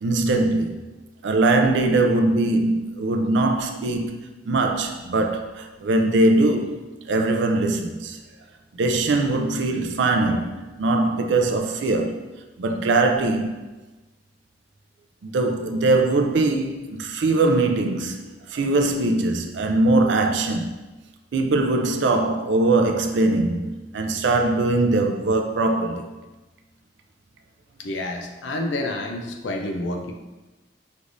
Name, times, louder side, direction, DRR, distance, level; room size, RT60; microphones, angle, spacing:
voice 1, 0.0-0.7 1.2-4.1 4.5-8.2 8.7-12.2 12.6-13.5 15.2-18.2 18.5-20.7 21.3-26.0, right 2 dB, 75° right, 0.4 m, -21 dB
voice 2, 27.8-30.1, left 1 dB, 85° left, 0.5 m, -29 dB
5.0 x 3.2 x 2.6 m
head